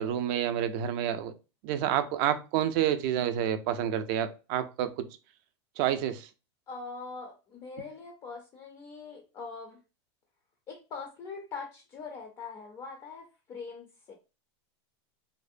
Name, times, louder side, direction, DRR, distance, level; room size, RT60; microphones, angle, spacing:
voice 1, 0.0-1.3 1.6-5.1 5.8-6.3, right 10 dB, 50° right, 0.4 m, -29 dB
voice 2, 6.7-9.8 10.7-14.1, left 4 dB, 25° left, 0.4 m, -42 dB
2.6 x 2.0 x 2.5 m
supercardioid pair, 140°, 15 cm